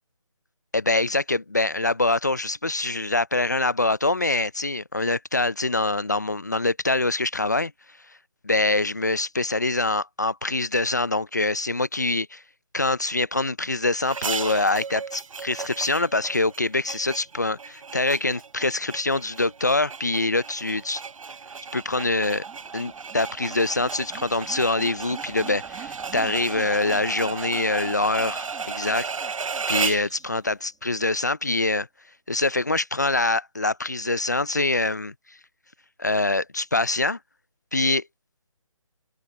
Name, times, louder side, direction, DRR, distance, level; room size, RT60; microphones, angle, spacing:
voice 1, 0.7-7.7 8.4-12.4 12.7-21.0 21.7-22.4 22.7-29.1 29.7-31.9 32.3-35.1 36.0-37.2 37.7-38.0, left 2 dB, 30° left, 0.4 m, -24 dB
sound 1, 14.1-30.1, right 5 dB, 70° right, 0.6 m, -34 dB
sound 2, 21.1-30.8, right 15 dB, 5° right, 1.0 m, -48 dB
hypercardioid pair, 175°, 18 cm